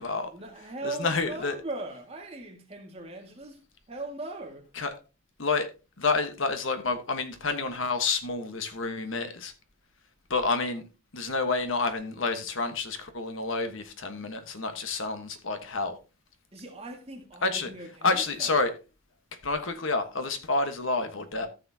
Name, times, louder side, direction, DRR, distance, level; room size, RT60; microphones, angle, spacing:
voice 1, 0.3-3.6 3.9-4.6 16.5-18.6, right 2 dB, 30° right, 1.8 m, -39 dB
voice 2, 0.8-1.6 4.8-4.9 5.4-5.7 6.0-9.5 10.3-10.8 11.1-16.0 17.4-17.7 18.0-18.7 19.4-21.5, left 3 dB, 65° left, 1.2 m, -29 dB
14.0 x 7.0 x 2.8 m
head